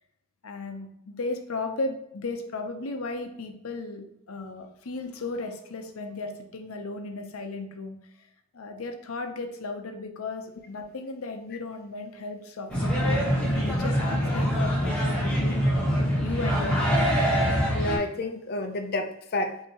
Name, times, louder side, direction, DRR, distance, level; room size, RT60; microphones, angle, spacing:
voice 1, 0.4-8.0 8.5-15.9 16.2-17.1, left 3 dB, 85° left, 5 dB, 0.7 m, -35 dB
sound 1, 12.7-18.0, equal, 5° left, 1.1 m, -24 dB
voice 2, 17.7-19.6, left 2 dB, 45° left, 6 dB, 0.5 m, -30 dB
6.2 x 2.8 x 2.9 m, 0.76 s
head